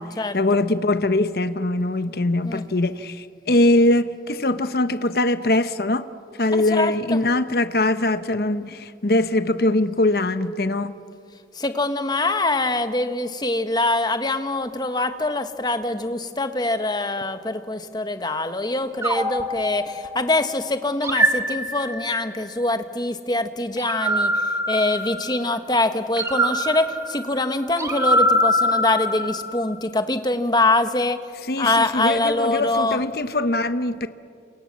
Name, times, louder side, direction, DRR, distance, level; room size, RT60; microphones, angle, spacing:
voice 1, 0.3-6.0 6.4-10.9 31.5-34.1, left 2 dB, 60° left, 1.0 m, -22 dB
voice 2, 6.5-7.2 11.5-31.2 31.6-33.0, left 2 dB, 25° left, 1.3 m, -24 dB
sound 1, 19.0-20.4 21.0-22.3 23.8-25.5 26.2-29.7, equal, 15° right, 1.7 m, -23 dB
29.0 x 27.5 x 7.5 m
head